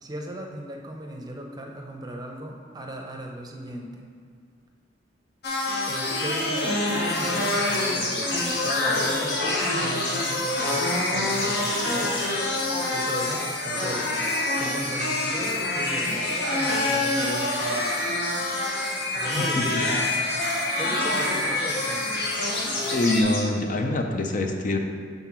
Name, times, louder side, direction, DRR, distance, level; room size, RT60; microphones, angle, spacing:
voice 1, 0.0-4.1 5.8-8.4 8.6-12.2 12.9-14.3 14.6-17.8 19.2-20.0 20.8-22.1, right 1 dB, 20° right, 1 dB, 0.6 m, -36 dB
sound 1, 5.4-23.2, left 2 dB, 60° left, 0.9 m, -26 dB
sound 2, 7.0-23.4, left 2 dB, 85° left, 1.3 m, -36 dB
voice 2, 22.9-24.8, left 2 dB, 45° left, 4 dB, 0.5 m, -24 dB
5.7 x 4.0 x 5.9 m, 2.2 s
head